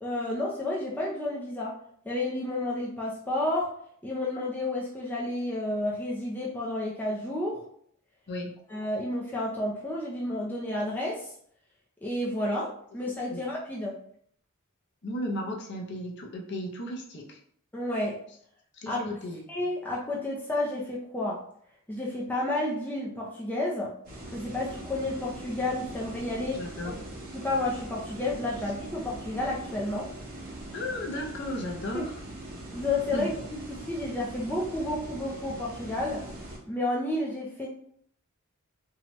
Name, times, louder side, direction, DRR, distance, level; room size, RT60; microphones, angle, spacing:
voice 1, 0.0-1.7 2.1-3.7 4.0-7.6 8.7-11.3 12.0-13.9 17.7-18.2 18.9-19.0 19.5-21.4 21.9-23.9 24.3-26.9 27.3-30.1 31.9-32.0 32.7-33.4 33.7-36.2 36.7-37.7, left 1 dB, 10° left, -4 dB, 0.4 m, -31 dB
voice 2, 8.3-8.6 13.3-13.4 15.0-17.4 18.7-19.4 26.5-26.9 30.7-32.2 33.1-33.3, left 1 dB, 55° left, 0 dB, 0.6 m, -35 dB
sound 1, 24.0-36.6, right 1 dB, 45° right, 0.9 m, -42 dB
2.7 x 2.2 x 2.9 m, 0.64 s
head